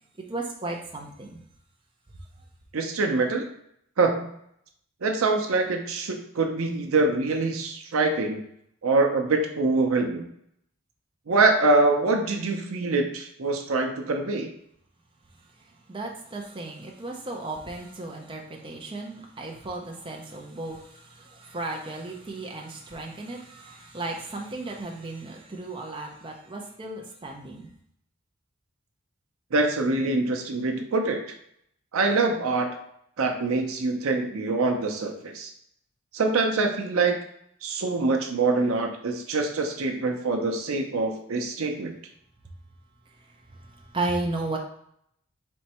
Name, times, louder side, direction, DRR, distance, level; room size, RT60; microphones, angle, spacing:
voice 1, 0.2-1.4 15.9-27.7 43.5-44.6, right 2 dB, 25° right, 0 dB, 0.5 m, -35 dB
voice 2, 2.7-3.5 4.0-4.3 5.0-8.4 8.8-10.2 11.3-14.5 29.5-31.2 31.9-32.7 33.2-35.5 36.1-37.2 37.6-41.9, right 3 dB, 80° right, 4 dB, 0.6 m, -24 dB
4.4 x 3.2 x 2.9 m, 0.72 s
head